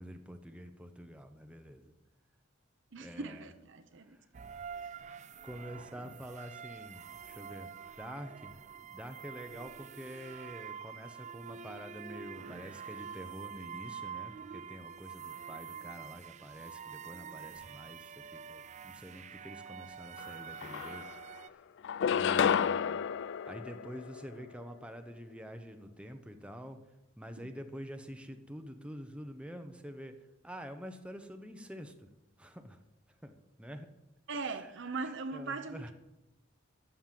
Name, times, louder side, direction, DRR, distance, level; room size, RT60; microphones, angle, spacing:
voice 1, 0.0-1.8 3.0-3.5 5.4-7.7 8.0-8.5 8.9-21.1 21.5-21.6 22.1-23.0 23.5-26.8 27.2-30.2 30.4-31.9 32.4-32.8 33.2-33.9 34.3-34.7 35.0-35.9, equal, 5° right, 0.8 m, -47 dB
voice 2, 2.9-4.5 27.4-27.5 34.3-35.9, right 3 dB, 65° right, 0.9 m, -40 dB
sound 1, 4.3-21.5, right 7 dB, 35° right, 0.4 m, -46 dB
sound 2, 20.2-20.3 20.6-21.4 21.8-24.4, left 7 dB, 65° left, 0.3 m, -31 dB
13.0 x 6.7 x 7.5 m
head